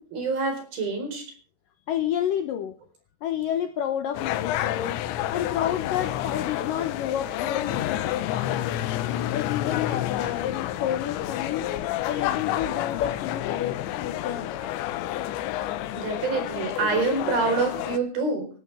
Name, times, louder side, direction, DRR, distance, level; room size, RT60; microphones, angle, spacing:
voice 1, 0.1-1.2 15.9-18.5, right 4 dB, 55° right, 6.1 m, -26 dB
voice 2, 1.9-2.8 3.2-5.0 5.3-8.7 9.3-11.7 12.1-14.6, left 10 dB, 70° left, 2.1 m, -30 dB
sound 1, 4.1-18.0, left 13 dB, 90° left, 3.3 m, -29 dB
19.5 x 15.5 x 3.4 m
omnidirectional pair, 5.1 m